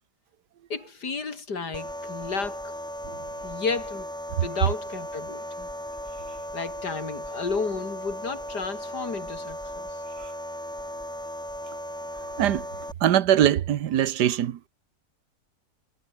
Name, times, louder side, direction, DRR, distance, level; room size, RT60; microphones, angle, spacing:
voice 1, 0.7-2.7 3.4-4.1 4.4-5.7 6.5-10.0, left 4 dB, 85° left, 3.6 m, -32 dB
sound 1, 1.7-12.9, equal, ahead, 4.7 m, -36 dB
voice 2, 13.0-14.6, right 11 dB, 90° right, 1.6 m, -21 dB
omnidirectional pair, 1.7 m